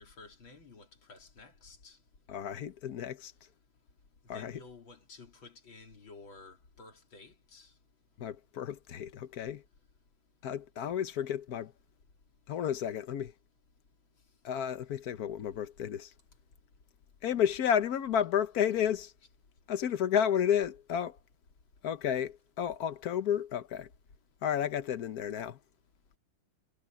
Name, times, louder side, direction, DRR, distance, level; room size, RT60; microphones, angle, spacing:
voice 1, 0.0-2.0 4.3-7.7, left 3 dB, 80° left, 3.9 m, -52 dB
voice 2, 2.3-3.3 4.3-4.6 8.2-9.6 10.4-11.7 12.5-13.3 14.4-16.1 17.2-19.1 19.7-21.2 21.8-23.9 24.4-25.6, left 9 dB, 55° left, 1.3 m, -31 dB
omnidirectional pair, 2.1 m